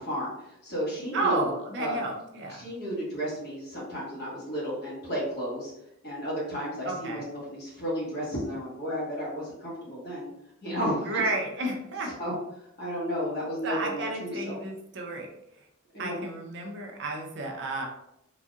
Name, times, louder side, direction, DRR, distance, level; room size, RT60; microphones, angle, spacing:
voice 1, 0.0-1.4 1.8-2.0 2.6-5.7 6.0-10.3 10.6-11.2 12.0-12.3 12.8-14.6 15.9-16.2, equal, 45° left, -5 dB, 1.3 m, -33 dB
voice 2, 1.1-2.7 6.8-7.3 11.1-12.1 13.6-15.3 16.0-17.9, right 2 dB, 55° right, 1 dB, 0.6 m, -32 dB
4.1 x 2.7 x 2.4 m, 0.81 s
head